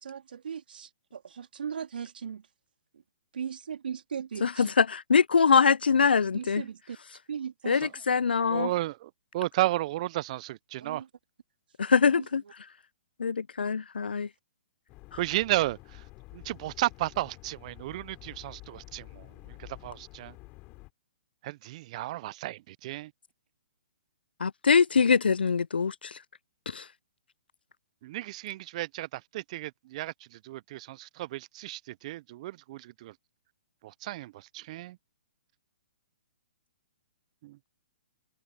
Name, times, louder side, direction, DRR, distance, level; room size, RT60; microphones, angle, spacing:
voice 1, 0.0-2.5 3.3-4.7 6.3-7.0 7.3-7.7 10.8-11.1 12.0-12.5, right 7 dB, 75° right, 2.6 m, -38 dB
voice 2, 4.4-6.6 7.7-8.7 11.8-12.4 13.2-14.3 24.4-26.1 26.7-26.8, left 5 dB, 85° left, 0.4 m, -23 dB
voice 3, 8.5-11.0 15.2-15.8 16.3-20.3 21.4-23.1 28.0-33.1 33.8-35.0 37.4-37.6, right 16 dB, 45° right, 0.5 m, -33 dB
sound 1, 14.9-20.9, left 23 dB, 30° left, 3.2 m, -49 dB
hypercardioid pair, 135°, 5 cm